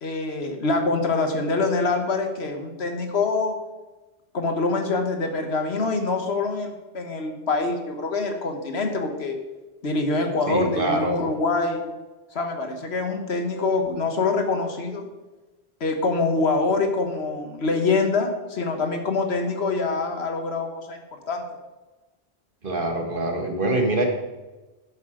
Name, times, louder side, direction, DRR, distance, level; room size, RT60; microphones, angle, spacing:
voice 1, 0.0-3.6 4.3-9.4 9.8-11.8 12.3-15.1 15.8-21.4, left 3 dB, 80° left, 5 dB, 1.6 m, -25 dB
voice 2, 10.5-11.2 22.6-24.1, right 1 dB, 55° right, 3 dB, 1.7 m, -24 dB
10.5 x 7.8 x 5.0 m, 1.2 s
omnidirectional pair, 1.1 m